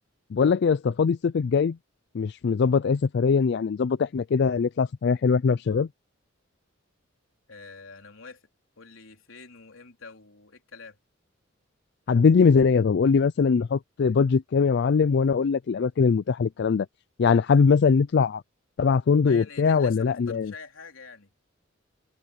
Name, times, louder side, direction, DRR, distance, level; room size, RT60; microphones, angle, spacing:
voice 1, 0.3-1.8 2.1-5.9 12.1-16.9 17.2-18.4 18.8-20.5, left 5 dB, 55° left, 0.4 m, -21 dB
voice 2, 7.5-8.5 8.8-11.0 19.3-21.3, left 4 dB, 80° left, 3.6 m, -46 dB
head